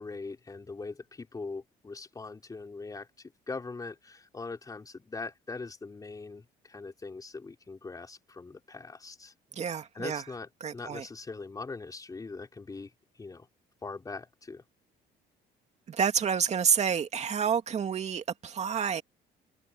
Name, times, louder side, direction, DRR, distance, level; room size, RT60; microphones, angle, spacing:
voice 1, 0.0-9.3 9.9-10.5 10.7-12.9 13.2-13.5 13.8-14.6, left 3 dB, 20° left, 3.8 m, -41 dB
voice 2, 9.5-10.2 10.6-11.0 15.9-19.0, right 7 dB, 40° right, 2.5 m, -29 dB
cardioid pair, 110°, 17 cm